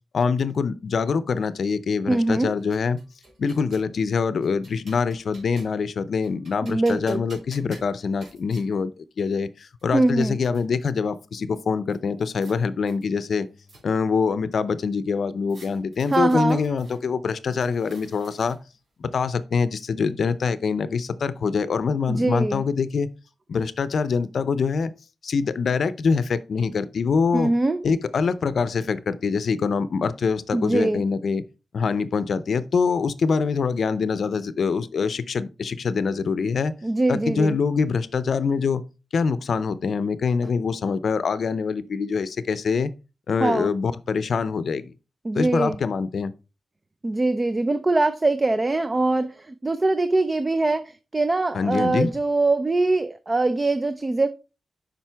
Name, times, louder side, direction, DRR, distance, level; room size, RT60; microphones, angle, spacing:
voice 1, 0.1-3.0 3.4-13.5 13.8-18.6 19.0-23.1 23.5-24.9 25.2-27.5 27.8-31.4 31.7-36.7 37.1-38.8 39.1-42.9 43.3-44.9 45.3-46.3 51.5-52.1, left 5 dB, 70° left, 0.5 m, -24 dB
voice 2, 2.1-2.5 6.6-7.2 9.9-10.3 16.1-16.6 22.1-22.6 27.3-27.8 30.5-31.0 36.8-37.6 43.4-43.7 45.2-45.8 47.0-54.3, right 2 dB, 30° right, 0.5 m, -22 dB
sound 1, 2.2-3.9 4.4-5.9 6.2-8.7 9.4-9.5 9.8-10.6 11.9-12.6 12.9-14.1 15.5-17.0 17.5-18.8, right 1 dB, 70° right, 3.4 m, -51 dB
7.4 x 5.2 x 3.4 m
cardioid pair, 75°, 0 cm